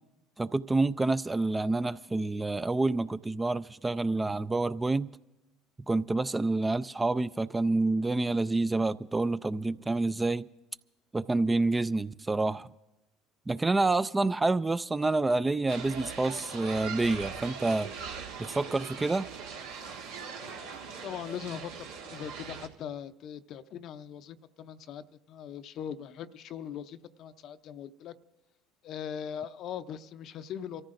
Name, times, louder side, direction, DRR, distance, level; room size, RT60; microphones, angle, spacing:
voice 1, 0.4-5.1 5.9-10.5 11.1-12.7 13.5-17.9 18.4-19.3, right 2 dB, 15° right, 0.4 m, -28 dB
sound 1, 15.7-22.7, right 5 dB, 80° right, 1.5 m, -41 dB
voice 2, 20.4-28.1 28.8-30.8, left 9 dB, 55° left, 0.6 m, -41 dB
28.5 x 14.5 x 2.5 m
hypercardioid pair, 75°, 0 cm